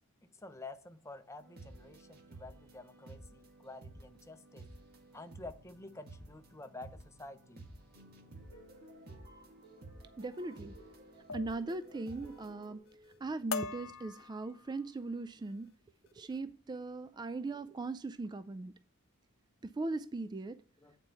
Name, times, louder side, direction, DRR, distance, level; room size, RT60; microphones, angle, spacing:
voice 1, 0.4-4.7 5.1-7.7 20.8-21.0, left 2 dB, 15° left, 0.7 m, -49 dB
sound 1, 1.4-12.7, right 2 dB, 45° right, 1.6 m, -54 dB
sound 2, 7.9-13.2, left 1 dB, 80° right, 2.7 m, -59 dB
voice 2, 10.2-10.7 11.3-12.8 13.2-15.7 16.1-18.7 19.6-20.6, right 3 dB, 20° right, 0.3 m, -39 dB
sound 3, 10.3-10.6 11.3-11.6 12.0-12.5 12.9-13.2 13.5-14.8 15.4-15.7 16.1-16.4, left 5 dB, 65° left, 0.7 m, -43 dB
8.6 x 4.5 x 5.4 m
head